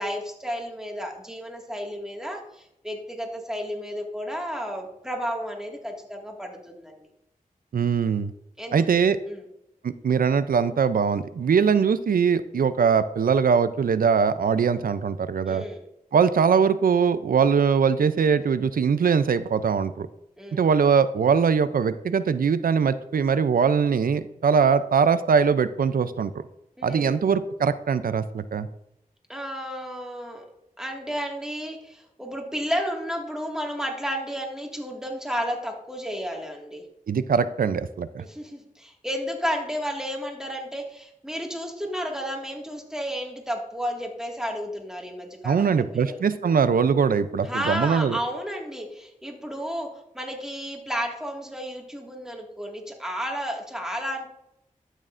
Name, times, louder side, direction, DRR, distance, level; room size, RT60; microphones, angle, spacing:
voice 1, 0.0-7.0 8.6-8.9 9.3-9.4 15.5-15.8 20.4-20.7 26.8-27.2 29.3-30.5 30.8-36.9 38.2-46.2 47.4-54.3, equal, 5° right, 0 dB, 1.9 m, -32 dB
voice 2, 7.7-8.3 8.7-9.2 9.8-15.6 16.1-20.1 20.5-26.4 26.8-28.7 37.1-38.2 45.4-48.2, right 6 dB, 80° right, 14 dB, 0.5 m, -22 dB
12.5 x 6.4 x 2.5 m, 0.81 s
cardioid pair, 50°, 15 cm